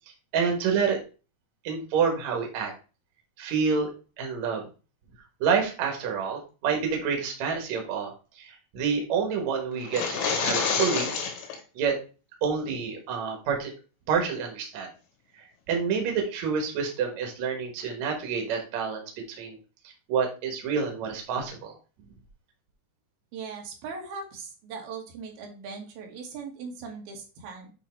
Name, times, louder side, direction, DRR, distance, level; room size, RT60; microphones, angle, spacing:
voice 1, 0.3-1.0 1.6-2.7 3.4-3.9 4.2-4.6 5.4-11.2 11.7-12.0 12.4-13.7 14.1-14.9 15.7-19.6 20.1-21.7, right 6 dB, 85° right, 2 dB, 1.5 m, -28 dB
sound 1, 9.8-11.6, left 5 dB, 90° left, 3.9 m, -28 dB
voice 2, 23.3-27.7, right 5 dB, 65° right, 1 dB, 2.8 m, -39 dB
8.5 x 3.1 x 4.4 m, 0.34 s
omnidirectional pair, 5.6 m